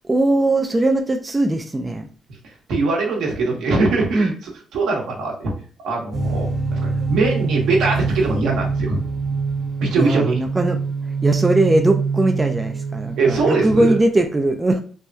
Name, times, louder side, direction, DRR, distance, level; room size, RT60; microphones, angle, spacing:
voice 1, 0.0-2.0 4.1-4.3 9.9-10.8 11.2-14.8, right 2 dB, 20° right, 4 dB, 0.4 m, -19 dB
voice 2, 2.7-4.3 4.7-5.5 5.8-9.0 9.8-10.4 13.2-14.0, right 3 dB, 80° right, 0 dB, 1.0 m, -21 dB
sound 1, 6.1-14.0, right 4 dB, 45° right, 1.0 m, -25 dB
3.4 x 2.2 x 2.6 m, 0.43 s
cardioid pair, 90°, 0 cm